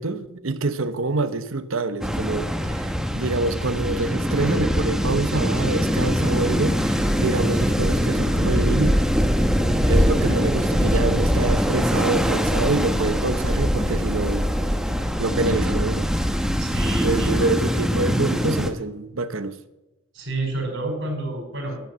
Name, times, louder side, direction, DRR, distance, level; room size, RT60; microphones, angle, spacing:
voice 1, 0.0-9.0 9.9-14.5 15.2-16.1 17.0-19.6, right 3 dB, 90° right, 1.0 m, -26 dB
sound 1, 2.0-18.7, equal, 5° right, 1.1 m, -22 dB
voice 2, 16.6-17.5 20.1-21.8, right 2 dB, 65° right, 5.1 m, -29 dB
12.0 x 11.0 x 7.5 m
head